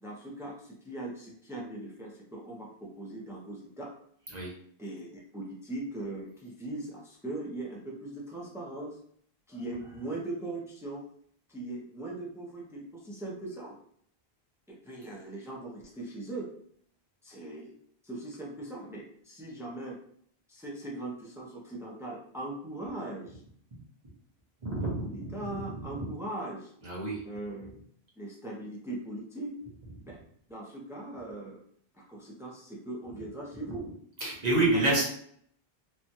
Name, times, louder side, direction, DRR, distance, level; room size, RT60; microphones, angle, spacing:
voice 1, 0.0-3.9 4.8-9.0 9.5-11.1 11.5-13.7 14.7-16.5 17.2-17.7 18.0-20.0 20.5-23.4 25.0-26.7 27.2-27.7 28.2-29.6 30.0-30.2 30.5-31.6 31.9-33.9 34.6-35.0, right 2 dB, 5° right, -3 dB, 0.5 m, -40 dB
voice 2, 24.6-26.1 26.8-27.2 34.2-35.0, right 2 dB, 45° right, -4 dB, 1.0 m, -29 dB
3.0 x 2.3 x 2.7 m, 0.64 s
omnidirectional pair, 1.1 m